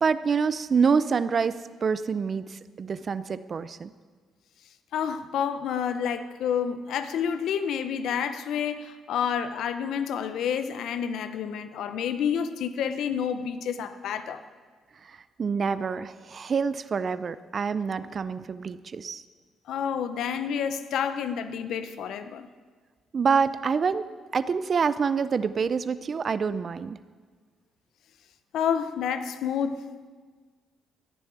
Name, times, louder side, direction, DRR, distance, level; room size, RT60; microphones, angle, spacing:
voice 1, 0.0-3.9 15.0-19.2 23.1-24.0 24.3-27.0, right 5 dB, 45° right, 14 dB, 0.5 m, -26 dB
voice 2, 4.9-14.4 19.7-22.5 28.5-29.9, left 8 dB, 80° left, 11 dB, 0.7 m, -29 dB
14.5 x 7.0 x 9.5 m, 1.5 s
cardioid pair, 90°, 0 cm